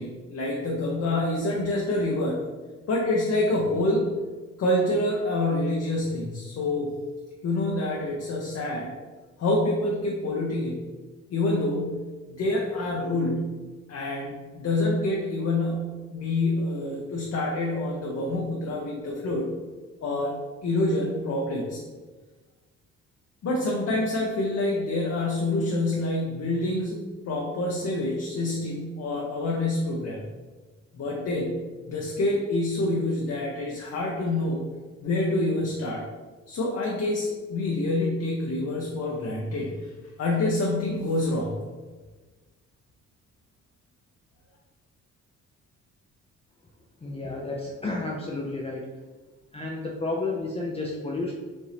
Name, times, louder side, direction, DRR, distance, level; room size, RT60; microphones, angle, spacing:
voice 1, 0.0-2.4 2.9-4.1 4.6-6.9 7.4-8.9 9.4-10.8 11.3-13.5 13.9-19.5 20.0-21.8 23.4-30.2 30.9-34.6 35.0-36.0 36.5-39.9 40.2-41.5, left 2 dB, 55° left, -2 dB, 0.8 m, -27 dB
voice 2, 47.0-48.9 49.5-51.3, left 2 dB, 20° left, -2 dB, 0.5 m, -31 dB
5.1 x 2.7 x 3.4 m, 1.3 s
cardioid pair, 90°, 30 cm